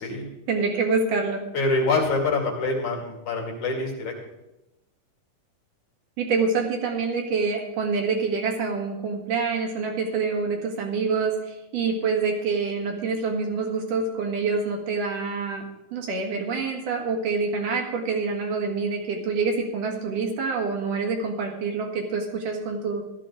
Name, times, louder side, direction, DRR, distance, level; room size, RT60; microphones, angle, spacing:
voice 1, 0.5-1.4 6.2-23.0, right 4 dB, 75° right, 2 dB, 3.4 m, -26 dB
voice 2, 1.5-4.1, left 3 dB, 65° left, 0 dB, 3.8 m, -25 dB
15.0 x 12.5 x 3.8 m, 0.94 s
omnidirectional pair, 3.8 m